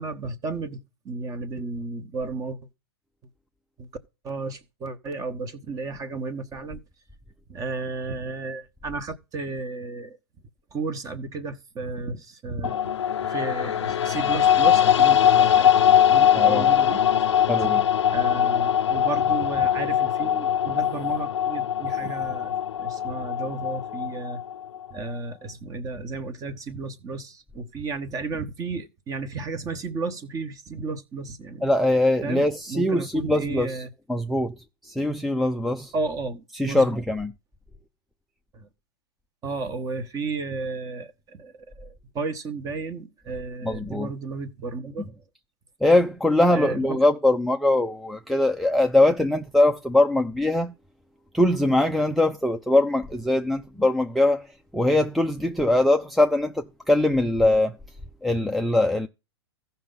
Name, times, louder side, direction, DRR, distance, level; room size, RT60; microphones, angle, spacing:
voice 1, 0.0-2.6 3.8-3.9 4.2-6.8 7.5-10.2 10.7-12.9 13.2-17.0 17.3-17.4 18.1-24.4 24.9-31.7 32.2-33.9 35.9-36.9 38.5-38.7 39.4-45.1 46.5-47.0, right 3 dB, 25° right, 1.1 m, -33 dB
sound 1, 12.6-24.9, left 9 dB, 90° left, 0.4 m, -21 dB
voice 2, 16.3-16.7 17.5-17.9 31.6-33.8 34.1-35.9 36.5-37.3 43.6-44.1 45.8-50.7 51.3-57.8 58.2-59.1, left 1 dB, ahead, 0.4 m, -22 dB
14.5 x 5.6 x 3.9 m
hypercardioid pair, 125°, 14 cm